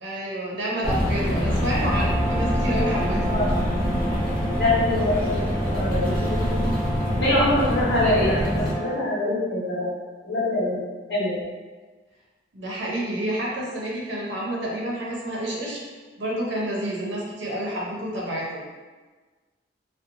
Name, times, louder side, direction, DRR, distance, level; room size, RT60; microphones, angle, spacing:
voice 1, 0.0-3.2 12.5-15.8 16.2-18.5, right 1 dB, 75° right, -5 dB, 0.7 m, -29 dB
sound 1, 0.8-8.7, equal, 50° left, 0.6 m, -25 dB
Brass instrument, 1.5-9.2, right 1 dB, 20° right, 0.4 m, -34 dB
voice 2, 4.5-6.7 7.2-9.9 10.2-11.4, left 1 dB, 65° left, -9 dB, 1.1 m, -24 dB
2.6 x 2.2 x 2.5 m, 1.4 s
head